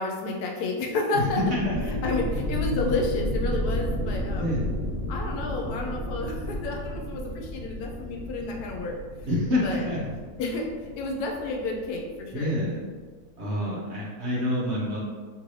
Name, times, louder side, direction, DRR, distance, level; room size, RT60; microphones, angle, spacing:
voice 1, 0.0-1.4 2.0-4.6 5.1-9.0 9.6-9.8 10.4-12.6, left 3 dB, 85° left, 0 dB, 1.1 m, -30 dB
voice 2, 1.1-1.9 4.4-4.8 9.3-10.0 12.3-12.8 13.4-15.0, left 1 dB, 55° right, -6 dB, 0.8 m, -27 dB
sound 1, 1.2-12.6, equal, 75° right, 1.1 m, -32 dB
3.0 x 2.6 x 3.0 m, 1.5 s
omnidirectional pair, 1.6 m